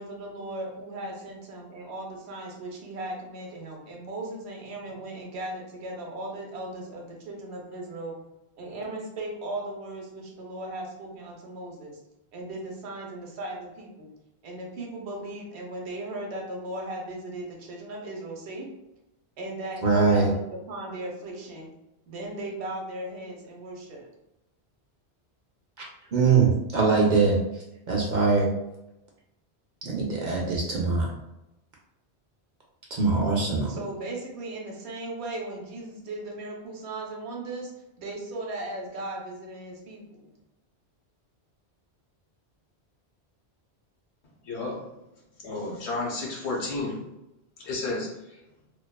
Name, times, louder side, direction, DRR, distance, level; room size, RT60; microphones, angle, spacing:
voice 1, 0.0-8.1 8.6-12.0 12.3-14.1 14.4-18.7 19.4-21.7 22.1-24.1 33.7-37.7 38.0-40.3, right 2 dB, 75° right, 0 dB, 0.9 m, -37 dB
voice 2, 19.8-20.3 26.1-28.5 29.8-31.1 32.9-33.7, right 4 dB, 55° right, -2 dB, 0.5 m, -22 dB
voice 3, 44.4-44.8 45.4-47.0 47.6-48.4, left 2 dB, 85° left, -2 dB, 1.1 m, -31 dB
2.5 x 2.3 x 2.2 m, 0.92 s
omnidirectional pair, 1.1 m